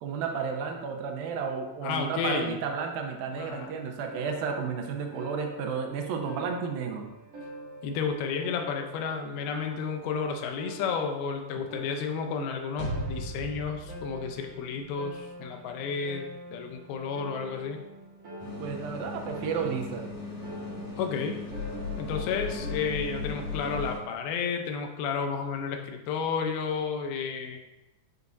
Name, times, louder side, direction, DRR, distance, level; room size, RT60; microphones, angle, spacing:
voice 1, 0.0-7.1 18.6-20.0, right 6 dB, 80° right, 4 dB, 2.5 m, -32 dB
voice 2, 1.8-2.6 3.3-3.7 7.8-17.8 21.0-21.4 22.0-27.6, left 6 dB, 85° left, 4 dB, 2.7 m, -32 dB
sound 1, 4.1-24.0, left 1 dB, 50° right, 2.9 m, -41 dB
sound 2, 18.4-24.0, left 3 dB, 65° left, 4.4 m, -40 dB
9.4 x 7.2 x 2.6 m, 1.0 s
omnidirectional pair, 4.2 m